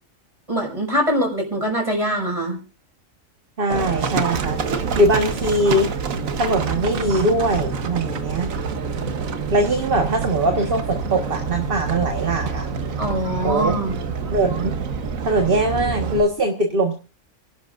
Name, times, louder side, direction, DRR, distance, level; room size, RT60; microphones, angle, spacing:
voice 1, 0.5-2.6 13.0-13.9, equal, 25° right, 1 dB, 5.6 m, -23 dB
voice 2, 3.6-4.6 5.0-5.9 6.4-8.5 9.5-12.6 13.4-13.8 14.3-14.8 15.2-16.9, right 1 dB, 45° right, 3 dB, 1.7 m, -21 dB
Livestock farm animals working animals, 3.7-16.2, right 5 dB, 90° right, 1.6 m, -27 dB
29.0 x 11.5 x 2.6 m, 0.33 s
omnidirectional pair, 1.4 m